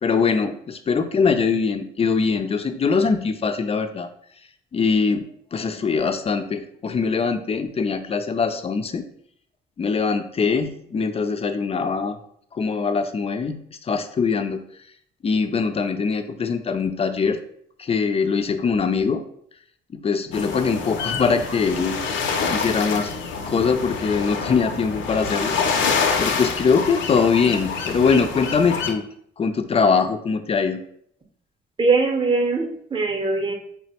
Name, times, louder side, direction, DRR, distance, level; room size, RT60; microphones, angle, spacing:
voice 1, 0.0-4.1 4.7-9.0 9.8-12.2 12.5-14.6 15.2-17.4 17.8-19.2 19.9-22.2 22.5-23.1 23.5-25.6 26.2-29.0 29.4-30.8, left 5 dB, 30° left, 8 dB, 0.4 m, -22 dB
sound 1, 20.3-28.9, left 5 dB, 70° left, 0.6 m, -26 dB
voice 2, 31.8-33.5, right 3 dB, 25° right, 3 dB, 0.7 m, -21 dB
3.7 x 2.1 x 4.1 m, 0.66 s
cardioid pair, 90°, 20 cm